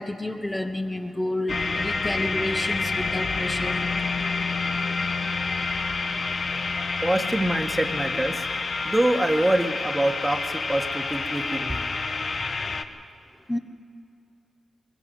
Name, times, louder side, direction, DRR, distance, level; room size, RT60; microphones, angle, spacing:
voice 1, 0.0-3.8 13.5-13.6, left 1 dB, 15° left, 5 dB, 1.3 m, -30 dB
sound 1, 1.5-12.8, left 4 dB, 55° left, 1.2 m, -28 dB
voice 2, 7.0-8.5 8.8-11.9, right 1 dB, 15° right, 6 dB, 1.7 m, -25 dB
21.0 x 14.5 x 9.7 m, 2.6 s
supercardioid pair, 40°, 0 cm